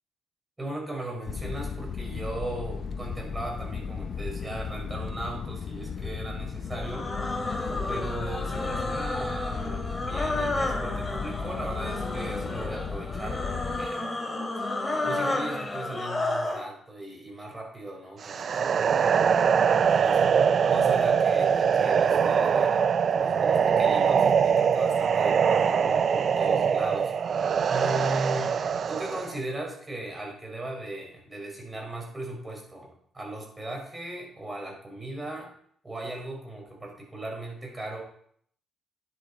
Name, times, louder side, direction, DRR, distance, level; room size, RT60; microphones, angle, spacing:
voice 1, 0.6-7.1 7.9-14.1 15.0-19.2 19.8-20.4 20.7-27.1 27.7-35.5 35.8-38.0, right 1 dB, 20° right, 0 dB, 5.7 m, -37 dB
sound 1, 1.3-13.9, left 6 dB, 55° left, 0.8 m, -35 dB
sound 2, 6.7-16.6, left 2 dB, 20° left, 2.8 m, -31 dB
sound 3, 18.2-29.4, right 7 dB, 55° right, 0.5 m, -23 dB
11.0 x 10.0 x 4.4 m, 0.64 s
cardioid pair, 90°, 0 cm